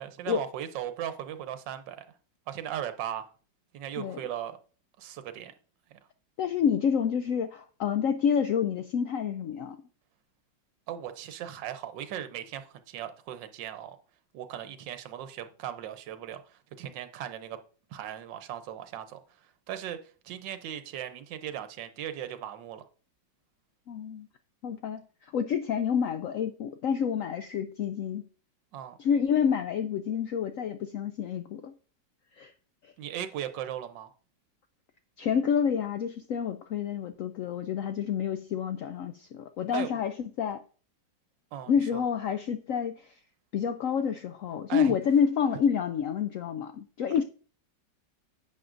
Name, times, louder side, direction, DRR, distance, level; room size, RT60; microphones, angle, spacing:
voice 1, 0.0-2.0 2.5-3.3 3.7-4.6 5.0-5.5 10.9-14.0 14.3-16.4 16.8-17.6 17.9-19.2 19.7-20.0 20.2-22.9 28.7-29.0 33.0-34.1 39.7-40.0 41.5-42.0 44.7-45.0, right 10 dB, 80° right, 1.4 m, -37 dB
voice 2, 6.4-9.8 23.9-24.3 24.6-28.2 29.0-31.7 32.4-32.5 35.2-40.6 41.7-43.1 43.5-47.2, left 7 dB, 90° left, 0.7 m, -28 dB
10.5 x 7.7 x 2.5 m
omnidirectional pair, 2.0 m